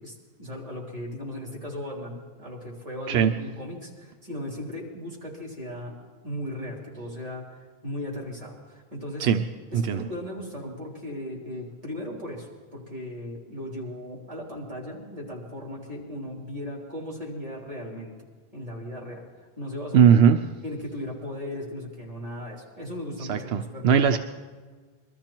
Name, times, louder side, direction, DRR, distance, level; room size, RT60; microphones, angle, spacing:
voice 1, 0.0-6.0 6.2-9.3 9.7-18.1 18.5-19.3 19.6-20.1 20.6-24.1, left 1 dB, 35° right, -1 dB, 3.5 m, -37 dB
voice 2, 19.9-20.4 23.3-24.2, right 7 dB, 85° right, 7 dB, 0.9 m, -19 dB
22.5 x 13.5 x 4.5 m, 1.4 s
omnidirectional pair, 1.0 m